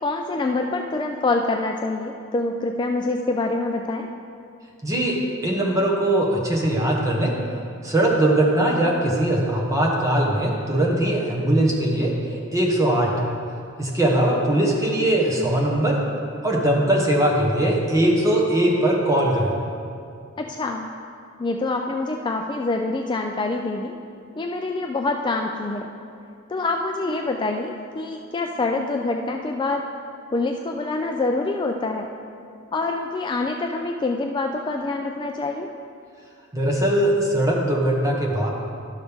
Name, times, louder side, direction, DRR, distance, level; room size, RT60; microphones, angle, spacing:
voice 1, 0.0-4.1 20.4-20.9 21.4-24.0 24.4-25.9 26.5-29.8 30.3-32.1 32.7-35.7, left 3 dB, 25° left, 3 dB, 0.3 m, -26 dB
voice 2, 4.8-5.2 5.4-7.4 7.8-12.1 12.5-13.1 13.8-16.0 16.4-19.5 36.5-38.5, right 1 dB, 15° right, -2 dB, 1.2 m, -20 dB
12.0 x 6.4 x 3.5 m, 2.5 s
head